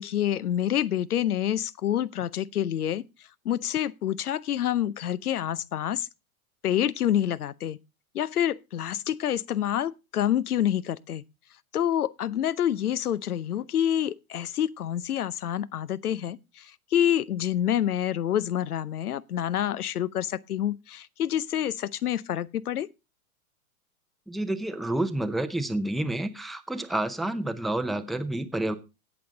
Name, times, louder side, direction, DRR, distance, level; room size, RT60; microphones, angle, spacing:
voice 1, 0.0-3.0 3.4-6.1 6.6-7.8 8.1-11.2 11.7-22.9, left 10 dB, 90° left, 0.7 m, -27 dB
voice 2, 24.3-28.8, right 1 dB, ahead, 0.6 m, -29 dB
17.5 x 6.1 x 3.8 m
hypercardioid pair, 115°, 44 cm